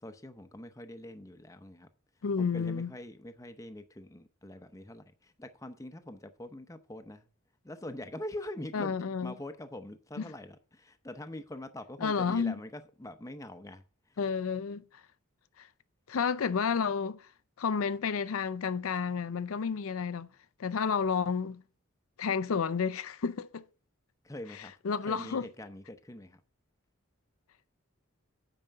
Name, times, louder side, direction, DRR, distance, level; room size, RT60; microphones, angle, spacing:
voice 1, 0.0-1.9 2.4-7.3 7.6-8.9 9.2-14.2 24.2-24.7 25.0-26.4, left 1 dB, 15° left, 0.7 m, -44 dB
voice 2, 2.2-2.9 8.7-9.3 12.0-12.5 14.2-14.8 15.6-15.7 16.1-17.3 17.6-20.3 20.6-21.6 22.2-23.6 24.8-25.5, left 6 dB, 75° left, 0.5 m, -31 dB
9.1 x 5.0 x 6.5 m
head